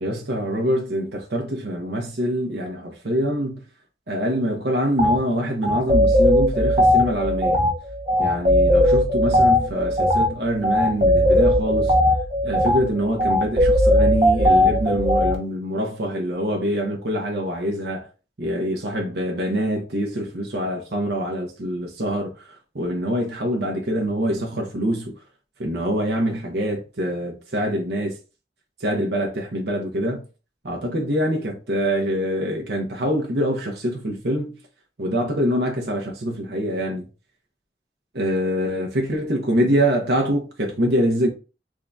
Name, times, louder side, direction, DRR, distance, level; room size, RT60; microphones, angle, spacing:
voice 1, 0.0-3.6 4.1-7.6 8.2-11.9 12.4-18.1 18.4-25.1 25.6-28.2 28.8-30.2 30.6-34.6 35.0-37.1 38.1-41.3, equal, 65° right, 0.8 m, -25 dB
sound 1, 5.0-5.2 5.6-15.4, left 1 dB, 30° right, 0.7 m, -18 dB
3.7 x 2.3 x 3.8 m
head